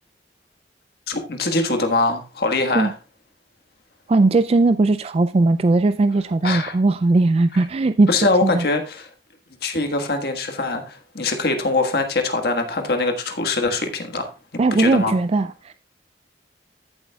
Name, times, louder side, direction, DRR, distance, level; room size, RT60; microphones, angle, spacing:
voice 1, 1.1-2.9 6.4-6.7 8.1-9.1 9.6-14.3 14.8-15.1, left 3 dB, 60° left, 1.6 m, -22 dB
voice 2, 4.1-8.1 8.4-8.6 14.6-15.7, right 3 dB, 35° right, 0.3 m, -18 dB
14.5 x 7.4 x 2.3 m
head